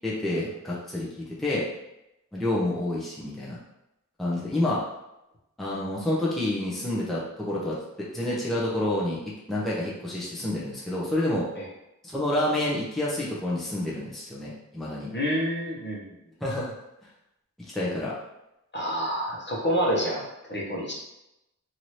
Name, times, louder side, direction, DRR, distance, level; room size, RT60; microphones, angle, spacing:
voice 1, 0.0-1.7 2.3-3.6 4.2-4.8 5.6-11.5 12.0-15.1 16.4-16.7 17.7-18.1, left 1 dB, ahead, -6 dB, 0.6 m, -28 dB
voice 2, 15.1-16.1 18.7-20.9, equal, 35° left, -4 dB, 0.9 m, -28 dB
2.9 x 2.6 x 3.1 m, 0.90 s
wide cardioid pair, 80°, 31 cm